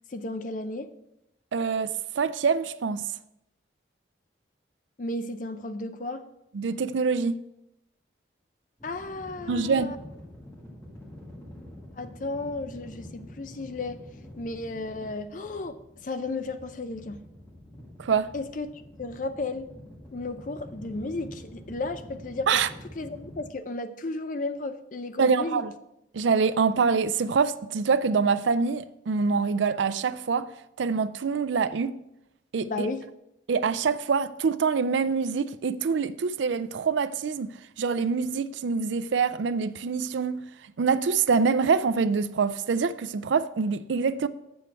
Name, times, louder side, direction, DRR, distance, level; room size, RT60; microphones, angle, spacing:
voice 1, 0.1-0.9 5.0-6.2 8.8-10.0 12.0-14.0 14.4-17.2 18.3-19.7 20.1-22.6 23.0-25.6 32.7-33.0, left 2 dB, 40° left, 0.5 m, -34 dB
voice 2, 1.5-3.1 6.5-7.4 9.5-10.0 18.0-18.3 22.5-22.7 25.2-25.7 26.1-30.5 30.8-32.0 32.5-32.9 33.5-40.4 40.8-44.3, right 5 dB, 75° right, 0.4 m, -25 dB
sound 1, 8.8-23.5, left 1 dB, 15° left, 1.8 m, -46 dB
7.5 x 7.0 x 4.6 m
head